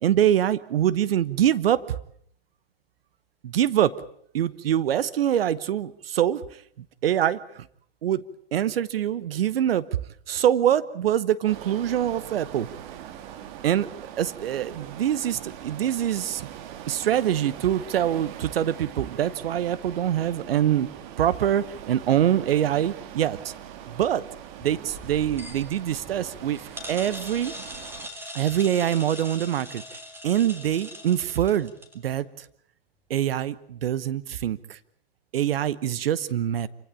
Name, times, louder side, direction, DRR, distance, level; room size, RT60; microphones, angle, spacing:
voice 1, 0.0-2.0 3.4-4.0 4.3-7.7 8.0-8.2 8.5-9.9 10.3-12.7 13.6-16.5 16.9-20.9 21.2-23.5 23.9-24.2 24.6-26.6 26.9-27.5 28.3-29.8 30.2-31.7 32.0-32.4 33.1-34.8 35.3-36.7, right 10 dB, 80° right, 18 dB, 1.0 m, -24 dB
sound 1, 11.5-28.1, right 10 dB, 55° right, 2.2 m, -42 dB
sound 2, 24.6-32.1, equal, 10° right, 3.4 m, -41 dB
27.5 x 16.5 x 8.5 m, 0.66 s
hypercardioid pair, 115°, 29 cm